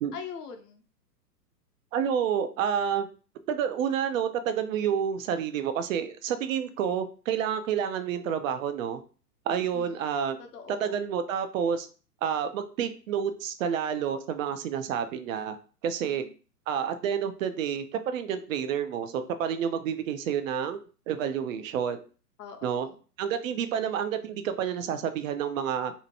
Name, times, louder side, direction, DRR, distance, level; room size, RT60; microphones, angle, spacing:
voice 1, 0.1-0.8 9.7-10.1 10.4-11.0 16.0-16.3 22.4-23.0, left 7 dB, 70° left, 5 dB, 0.7 m, -43 dB
voice 2, 1.9-3.1 3.5-9.0 9.5-10.4 10.8-11.9 12.2-15.6 15.8-16.2 16.7-20.8 21.1-22.0 22.6-22.9 23.2-25.9, right 8 dB, 55° right, 10 dB, 0.5 m, -29 dB
2.7 x 2.1 x 2.7 m, 0.37 s
hypercardioid pair, 120°, 49 cm